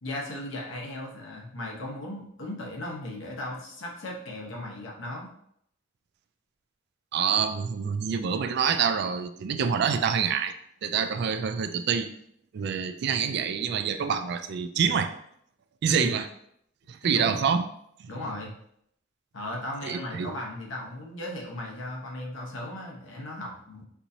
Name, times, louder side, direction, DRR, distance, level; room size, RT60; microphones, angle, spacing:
voice 1, 0.0-5.3 15.9-16.1 17.0-17.4 18.1-18.5 19.3-23.9, left 1 dB, 75° left, -1 dB, 0.9 m, -36 dB
voice 2, 7.1-10.5 10.8-12.1 12.5-15.1 15.8-16.3 16.9-17.7 18.0-18.1 19.8-20.3, right 6 dB, 55° right, 9 dB, 0.3 m, -26 dB
4.5 x 2.7 x 2.7 m, 0.70 s
head